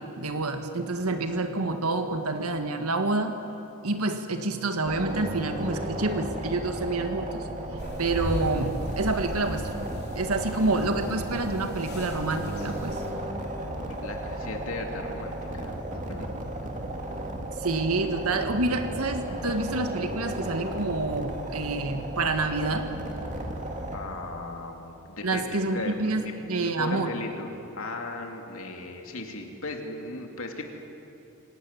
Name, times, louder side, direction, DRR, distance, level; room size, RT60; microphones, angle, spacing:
voice 1, 0.0-3.4 3.8-9.7 10.2-13.0 17.6-22.9 25.2-27.1, right 2 dB, 85° right, 6 dB, 1.8 m, -28 dB
sound 1, 4.8-24.0, right 1 dB, 35° right, 2.8 m, -34 dB
sound 2, 7.8-13.1, equal, 50° left, 3.5 m, -38 dB
voice 2, 13.7-16.3 23.9-30.7, left 2 dB, 65° left, 2 dB, 2.9 m, -37 dB
26.0 x 18.5 x 9.9 m, 2.9 s
head